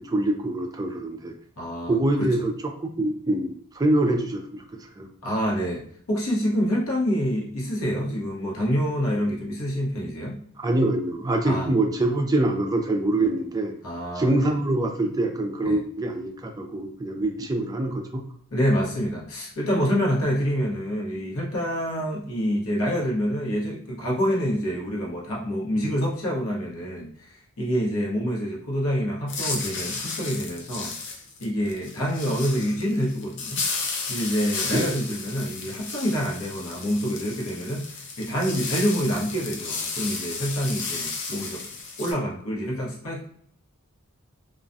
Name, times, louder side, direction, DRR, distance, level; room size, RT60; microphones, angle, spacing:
voice 1, 0.0-1.3 1.9-2.5 2.8-4.6 5.0-5.1 10.6-13.7 14.2-18.2 34.7-35.0, right 2 dB, 15° right, 3 dB, 0.3 m, -24 dB
voice 2, 1.6-2.3 5.2-5.8 6.1-10.4 11.4-11.7 13.8-14.6 15.6-15.8 18.5-30.9 31.4-33.6 34.1-41.6 42.0-43.2, equal, 75° left, -4 dB, 0.9 m, -27 dB
sound 1, 29.3-42.1, left 4 dB, 55° left, 0.5 m, -33 dB
2.3 x 2.1 x 2.6 m, 0.62 s
head